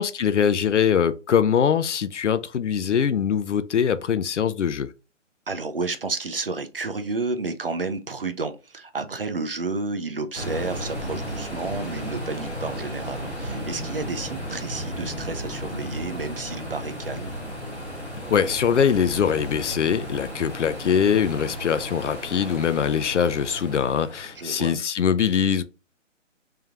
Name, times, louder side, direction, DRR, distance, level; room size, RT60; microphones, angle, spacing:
voice 1, 0.0-4.9 18.3-25.6, left 7 dB, 65° left, 0.5 m, -22 dB
voice 2, 5.5-17.3 24.4-24.8, right 3 dB, 45° right, 0.5 m, -31 dB
sound 1, 10.3-24.6, equal, 10° right, 1.6 m, -34 dB
3.6 x 3.4 x 2.8 m
hypercardioid pair, 180°, 38 cm